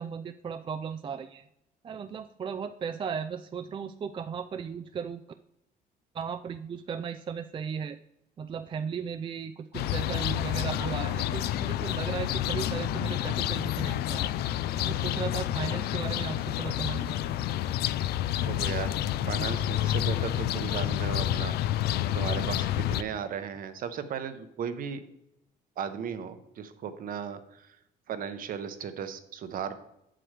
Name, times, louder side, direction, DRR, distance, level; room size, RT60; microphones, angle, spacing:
voice 1, 0.0-1.4 1.8-5.2 6.1-8.0 8.4-14.3 14.8-17.1, right 7 dB, 30° right, 9 dB, 0.4 m, -36 dB
sound 1, 9.7-23.0, left 12 dB, 70° left, 0.4 m, -29 dB
voice 2, 18.5-19.0 19.3-21.5 22.1-25.0 25.8-27.7 28.1-29.7, right 7 dB, 55° right, 10 dB, 0.9 m, -36 dB
7.7 x 7.7 x 3.3 m, 0.82 s
cardioid pair, 110°, 17 cm